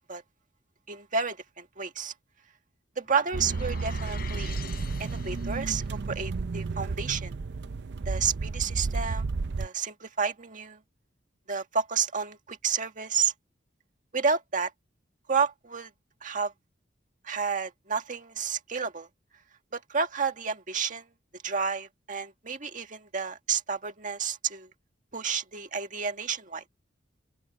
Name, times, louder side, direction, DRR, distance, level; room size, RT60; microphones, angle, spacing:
voice 1, 0.9-2.1 3.0-7.3 8.1-9.3 9.6-10.8 11.5-13.3 14.1-14.7 15.3-15.9 16.2-16.5 17.2-19.1 19.7-21.1 21.4-24.7 25.1-26.6, right 6 dB, 45° right, 1.8 m, -30 dB
sound 1, 3.0-5.9, left 8 dB, 55° left, 6.7 m, -46 dB
sound 2, 3.3-9.7, right 4 dB, 65° right, 0.5 m, -32 dB
open air
head